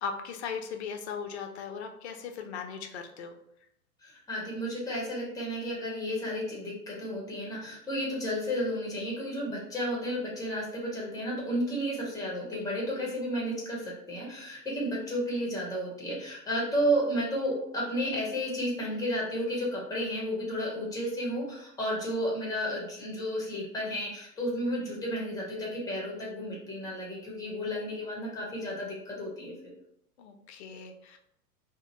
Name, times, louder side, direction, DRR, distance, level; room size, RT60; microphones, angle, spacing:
voice 1, 0.0-3.4 12.5-13.1 30.2-31.2, left 6 dB, 45° left, 5 dB, 0.4 m, -38 dB
voice 2, 4.0-29.5, equal, 10° left, -3 dB, 0.7 m, -32 dB
2.6 x 2.1 x 2.9 m, 0.75 s
figure-of-eight pair, 100°, 47 cm